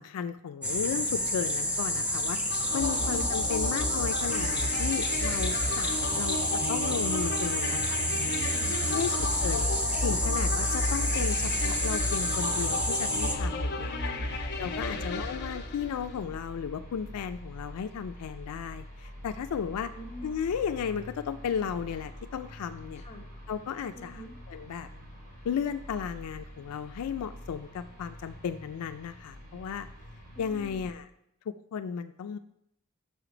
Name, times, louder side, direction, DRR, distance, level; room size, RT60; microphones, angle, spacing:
voice 1, 0.0-6.4 6.7-8.3 8.8-9.7 10.0-13.9 14.6-19.9 20.2-23.0 23.5-24.2 24.5-24.9 25.4-29.9 30.4-31.1 31.5-32.4, left 7 dB, 85° left, 10 dB, 0.3 m, -34 dB
sound 1, 0.6-13.3, left 1 dB, 5° right, 0.7 m, -30 dB
sound 2, 2.5-16.2, left 1 dB, 50° left, 0.8 m, -32 dB
voice 2, 8.2-9.1 13.7-14.4 14.8-15.1 19.9-20.3 22.9-23.2 23.9-24.3 30.3-30.9, equal, 30° left, 1 dB, 1.0 m, -46 dB
sound 3, 14.2-30.9, equal, 45° right, 2.2 m, -46 dB
6.4 x 4.9 x 4.9 m, 0.76 s
head